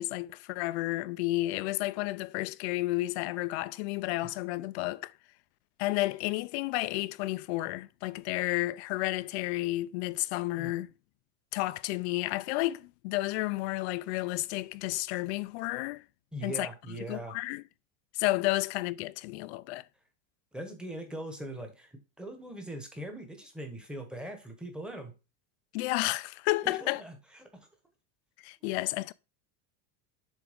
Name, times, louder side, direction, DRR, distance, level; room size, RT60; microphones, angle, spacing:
voice 1, 0.0-5.1 5.8-10.9 11.5-16.0 16.4-17.6 18.1-19.8 25.7-27.0 28.4-29.1, left 19 dB, 70° left, 0.5 m, -31 dB
voice 2, 16.3-17.3 20.5-21.9 22.2-25.1 26.6-27.2 27.5-27.6, right 1 dB, 5° right, 1.0 m, -41 dB
7.3 x 3.5 x 5.0 m
cardioid pair, 170°, 35 cm